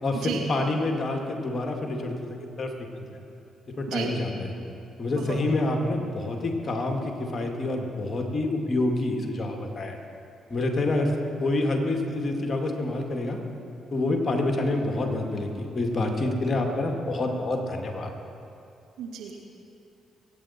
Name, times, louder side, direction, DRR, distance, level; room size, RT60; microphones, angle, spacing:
voice 1, 0.0-3.2 3.8-4.5 5.0-10.0 10.5-11.1 11.4-13.4 13.9-18.1, left 2 dB, 40° left, 3 dB, 2.2 m, -27 dB
voice 2, 19.0-19.5, right 7 dB, 70° right, 0 dB, 1.9 m, -33 dB
23.0 x 9.6 x 4.4 m, 2.7 s
hypercardioid pair, 45°, 0 cm